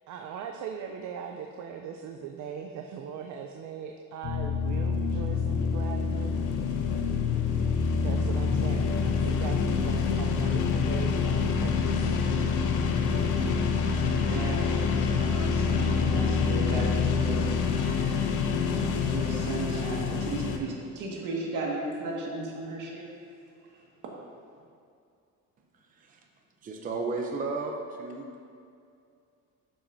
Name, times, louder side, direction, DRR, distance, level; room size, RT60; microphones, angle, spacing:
voice 1, 0.1-6.6 7.6-12.2, right 7 dB, 70° right, 3 dB, 0.6 m, -40 dB
sound 1, 4.2-20.6, left 5 dB, 80° left, 0.8 m, -26 dB
voice 2, 14.3-18.2 18.6-23.1, right 2 dB, 90° right, -3 dB, 1.9 m, -36 dB
voice 3, 26.6-28.2, right 3 dB, 25° right, 1 dB, 0.6 m, -33 dB
12.0 x 7.3 x 2.7 m, 2.4 s
cardioid pair, 175°, 31 cm